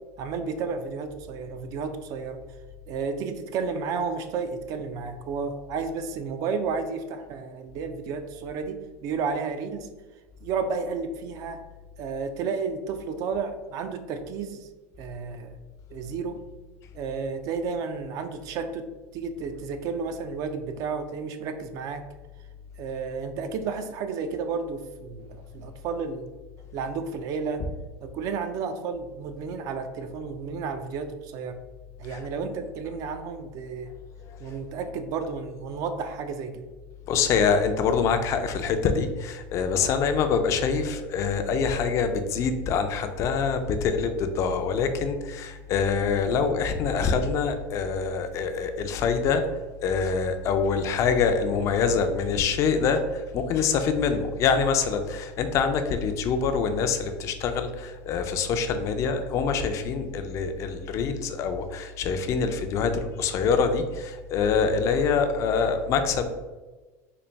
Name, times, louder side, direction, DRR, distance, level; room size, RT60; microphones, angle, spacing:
voice 1, 0.2-2.4 2.9-9.9 10.4-11.6 12.0-14.7 15.0-15.6 15.9-16.4 16.9-22.0 22.8-26.3 26.7-27.6 28.0-31.6 32.0-33.9 34.4-36.7 39.8-39.9, right 5 dB, 50° right, 8 dB, 0.4 m, -32 dB
voice 2, 37.1-66.3, left 5 dB, 40° left, 7 dB, 0.4 m, -25 dB
4.0 x 2.2 x 3.3 m, 1.2 s
supercardioid pair, 135°, 8 cm